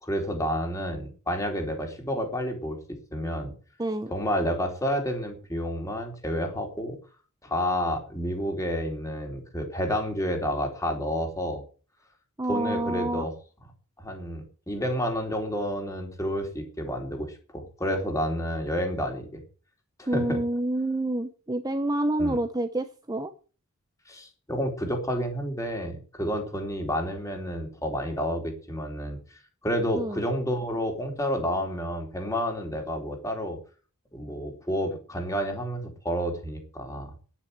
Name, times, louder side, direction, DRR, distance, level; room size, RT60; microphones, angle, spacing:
voice 1, 0.0-2.8 3.1-3.5 4.1-7.0 7.4-11.6 12.5-13.3 14.0-19.3 20.0-20.4 22.2-22.4 24.1-29.2 29.6-33.6 34.1-37.1, equal, 15° left, 3 dB, 3.9 m, -30 dB
voice 2, 3.8-4.1 12.4-13.2 20.1-23.3 29.9-30.2, right 1 dB, 15° right, 8 dB, 0.8 m, -28 dB
10.5 x 10.0 x 8.0 m, 0.38 s
head